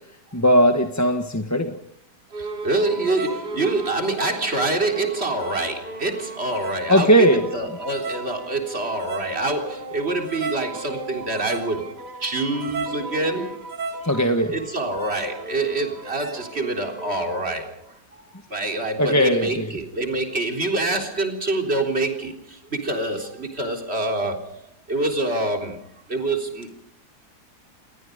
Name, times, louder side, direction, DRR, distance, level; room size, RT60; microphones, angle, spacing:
voice 1, 0.3-1.7 6.9-7.4 14.0-14.5 19.0-19.7, equal, 10° left, 5 dB, 1.4 m, -18 dB
sound 1, 2.3-17.7, right 3 dB, 80° right, 3.5 m, -35 dB
voice 2, 2.4-11.9 12.2-13.6 14.5-18.2 18.5-24.6 24.9-26.9, right 2 dB, 40° right, 4 dB, 4.0 m, -26 dB
29.0 x 21.5 x 5.3 m, 0.64 s
omnidirectional pair, 1.7 m